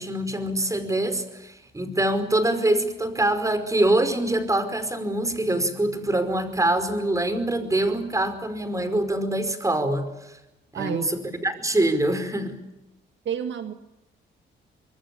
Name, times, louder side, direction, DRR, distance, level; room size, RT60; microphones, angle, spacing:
voice 1, 0.0-10.4 10.7-12.6, right 1 dB, 15° right, 10 dB, 5.1 m, -24 dB
voice 2, 10.7-11.1 13.3-13.7, right 8 dB, 70° right, 7 dB, 1.8 m, -29 dB
25.5 x 23.0 x 8.7 m, 0.94 s
cardioid pair, 90°, 20 cm